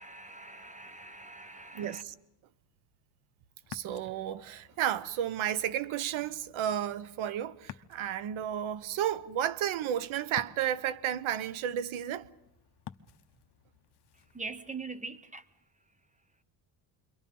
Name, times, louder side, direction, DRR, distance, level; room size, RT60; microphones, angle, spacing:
voice 1, 0.0-2.0 14.1-15.6, right 3 dB, 15° right, 1.0 m, -43 dB
voice 2, 1.7-2.1 3.7-12.3, right 10 dB, 80° right, 1.0 m, -32 dB
Ocean, 3.6-14.8, left 11 dB, 55° left, 1.0 m, -53 dB
28.5 x 23.5 x 5.4 m
cardioid pair, 120°, 47 cm